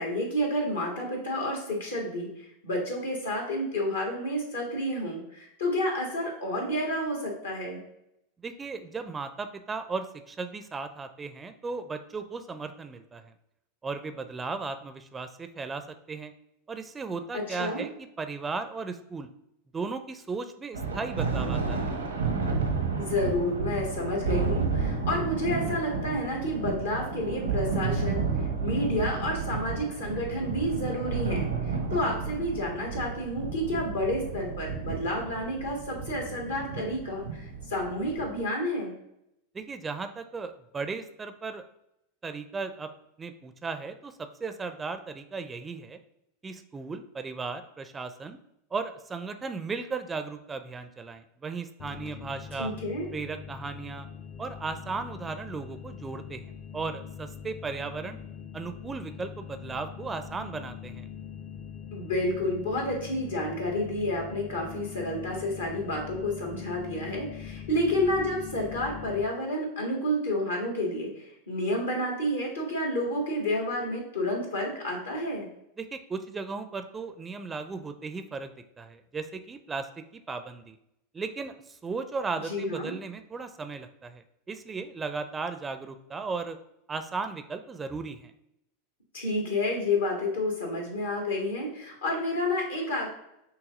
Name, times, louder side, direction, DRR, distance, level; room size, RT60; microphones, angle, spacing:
voice 1, 0.0-7.8 17.3-17.8 23.0-28.3 28.6-39.0 52.6-53.1 61.9-75.5 82.4-82.9 89.1-93.1, left 1 dB, 75° left, 0 dB, 1.5 m, -30 dB
voice 2, 8.4-13.2 13.8-16.3 16.7-19.3 19.7-21.9 39.5-41.6 42.2-42.9 43.2-46.0 46.4-48.4 48.7-52.7 53.1-54.1 54.4-58.2 58.5-61.1 75.8-78.5 78.8-80.8 81.1-86.6 86.9-88.3, right 4 dB, 20° right, 9 dB, 0.4 m, -36 dB
Thunder, 20.7-38.4, right 5 dB, 85° right, 0.8 m, -31 dB
sound 1, 51.8-69.3, left 8 dB, 35° left, 0.5 m, -42 dB
6.3 x 2.9 x 2.4 m, 0.81 s
figure-of-eight pair, 90°, 0 cm